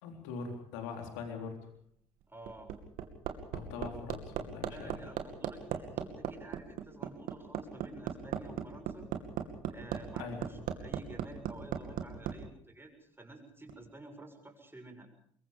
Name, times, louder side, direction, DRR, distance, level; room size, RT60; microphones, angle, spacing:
voice 1, 0.0-1.6 3.5-5.0 10.2-10.4, left 5 dB, 75° left, 3 dB, 3.8 m, -42 dB
Hammer, 2.2-12.3 13.7-13.8, right 10 dB, 65° right, 2.5 m, -36 dB
voice 2, 2.3-2.7 4.7-9.1 9.7-15.1, right 2 dB, 15° right, 3 dB, 7.2 m, -51 dB
25.5 x 22.5 x 5.2 m, 0.64 s
hypercardioid pair, 55°, 16 cm